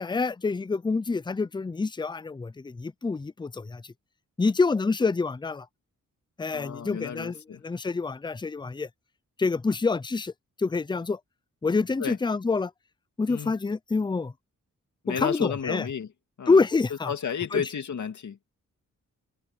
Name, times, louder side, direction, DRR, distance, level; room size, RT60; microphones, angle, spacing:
voice 1, 0.0-3.9 4.4-5.7 6.4-8.9 9.4-10.3 10.6-11.2 11.6-12.7 13.2-14.3 15.1-15.9 16.5-17.1 17.5-17.6, left 4 dB, 15° left, 0.5 m, -27 dB
voice 2, 6.5-7.6 12.0-12.2 13.3-13.5 15.0-16.1 16.4-16.6 17.1-18.4, left 7 dB, 65° left, 2.6 m, -32 dB
cardioid pair, 85°, 31 cm